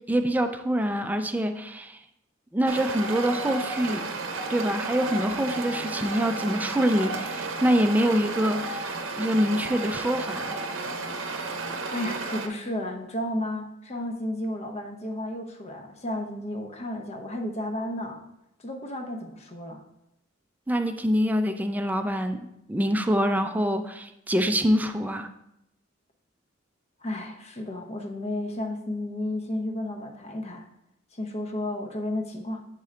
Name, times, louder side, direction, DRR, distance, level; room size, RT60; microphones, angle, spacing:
voice 1, 0.1-2.0 2.5-4.1 4.5-10.6 20.7-25.3, equal, 10° right, 7 dB, 0.4 m, -25 dB
sound 1, 2.7-12.5, right 3 dB, 90° right, 0.7 m, -32 dB
voice 2, 11.9-18.3 18.6-19.8 27.0-30.6 31.1-32.7, left 1 dB, 35° left, 4 dB, 0.7 m, -32 dB
8.3 x 3.7 x 3.2 m, 0.85 s
head